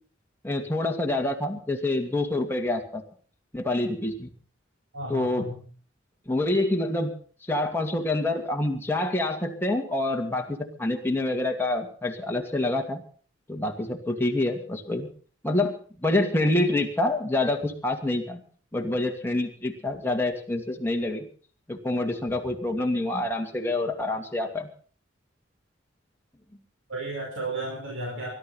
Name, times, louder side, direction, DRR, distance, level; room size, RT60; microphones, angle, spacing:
voice 1, 0.4-3.0 3.5-4.3 5.1-5.5 6.3-7.1 7.5-13.0 13.5-15.1 15.4-18.4 18.7-21.3 21.7-24.7, left 2 dB, 10° left, 1 dB, 2.4 m, -27 dB
voice 2, 4.9-5.6 26.9-28.3, right 2 dB, 85° right, -1 dB, 5.0 m, -33 dB
21.0 x 12.5 x 5.7 m, 0.43 s
head